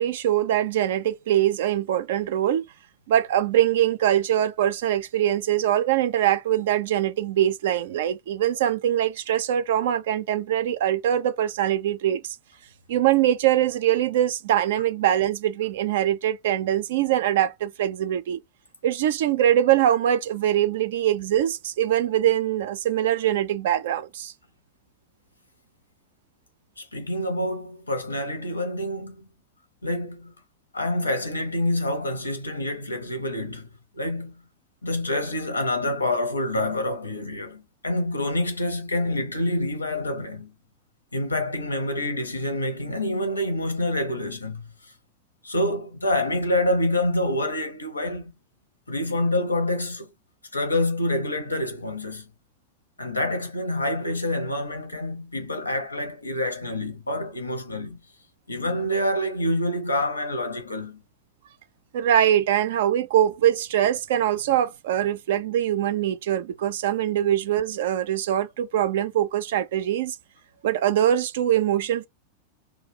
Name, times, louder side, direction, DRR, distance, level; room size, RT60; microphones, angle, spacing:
voice 1, 0.0-2.7 3.1-12.4 12.9-18.4 18.8-24.3 61.9-70.2 70.6-72.1, right 11 dB, 55° right, 0.4 m, -23 dB
voice 2, 26.8-29.3 29.8-30.3 30.7-33.7 34.0-34.3 34.8-40.5 41.1-44.7 45.4-48.3 48.9-50.1 50.5-52.3 53.0-58.0 58.5-61.0, left 1 dB, 80° left, 0.7 m, -27 dB
2.4 x 2.2 x 3.5 m
figure-of-eight pair, 90°, 0 cm